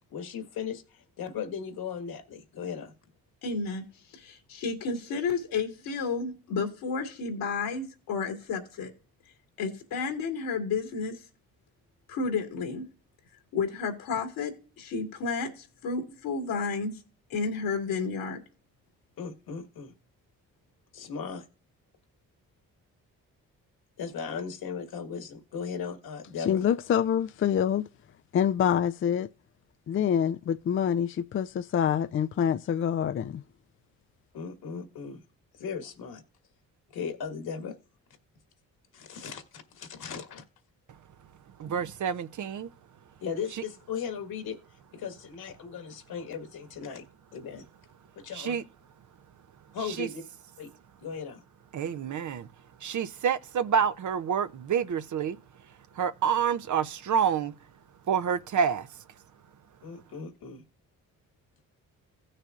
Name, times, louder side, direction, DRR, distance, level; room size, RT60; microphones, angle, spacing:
voice 1, 0.1-2.9 19.2-19.9 20.9-21.5 24.0-26.6 34.3-35.2 35.6-36.2 36.9-37.8 38.9-40.4 43.2-44.6 44.9-47.0 47.3-47.7 48.2-48.6 49.7-50.2 50.6-50.7 51.0-51.4 59.8-60.6, left 6 dB, 70° left, 1.8 m, -37 dB
voice 2, 3.4-3.8 4.1-8.9 9.6-11.2 12.1-12.8 13.5-16.9 17.3-18.4, left 4 dB, 85° left, 2.3 m, -31 dB
voice 3, 26.5-27.8 28.3-29.3 29.9-33.4, left 8 dB, 35° left, 0.4 m, -26 dB
voice 4, 41.6-42.7 48.3-48.6 50.0-50.1 51.7-52.5 52.8-55.4 56.0-57.5 58.1-58.9, right 7 dB, 50° right, 0.7 m, -28 dB
16.5 x 6.6 x 2.5 m
supercardioid pair, 50°, 38 cm